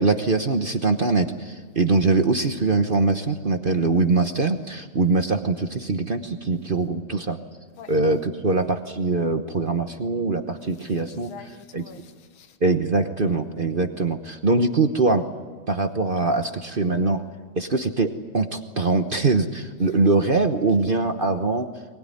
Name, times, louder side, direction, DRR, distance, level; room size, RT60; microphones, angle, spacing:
voice 1, 0.0-7.4 7.9-11.3 11.7-11.8 12.6-15.3 15.7-17.2 17.6-21.7, right 3 dB, 40° right, 0.8 m, -22 dB
voice 2, 10.7-12.6 19.8-20.0, left 7 dB, 70° left, 2.3 m, -46 dB
23.0 x 20.0 x 9.9 m
omnidirectional pair, 2.4 m